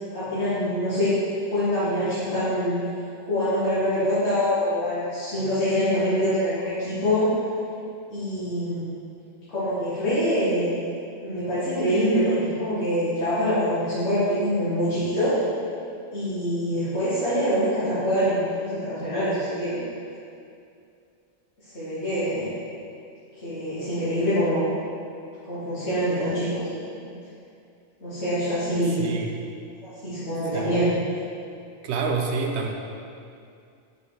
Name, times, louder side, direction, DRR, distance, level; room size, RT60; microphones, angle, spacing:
voice 1, 0.1-1.1 1.5-2.8 3.2-7.3 8.1-8.9 9.5-10.8 11.2-15.4 16.1-19.8 21.6-22.5 23.4-24.7 25.5-26.6 26.9-27.1 28.0-29.1 29.8-30.9, equal, 85° left, -14 dB, 1.8 m, -25 dB
voice 2, 29.0-29.3 30.5-30.9 31.8-32.7, right 4 dB, 85° right, 2 dB, 0.9 m, -27 dB
5.6 x 4.1 x 5.0 m, 2.4 s
omnidirectional pair, 1.1 m